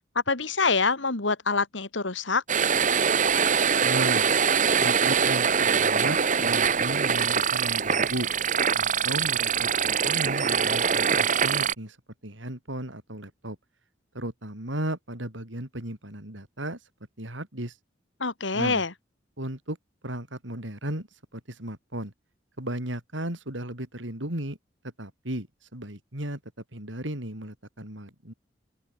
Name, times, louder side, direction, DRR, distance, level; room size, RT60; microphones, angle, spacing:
voice 1, 0.0-2.4 18.2-18.9, left 4 dB, 85° left, 2.5 m, -26 dB
sound 1, 2.5-11.7, right 6 dB, 40° right, 1.1 m, -23 dB
voice 2, 3.8-4.3 4.8-8.3 8.7-12.0 12.2-13.6 14.1-16.8 17.2-17.8 18.5-18.8 19.4-19.8 20.0-22.1 22.6-24.6 25.0-25.5 25.7-26.4 26.7-28.3, right 1 dB, 90° right, 5.4 m, -35 dB
open air
head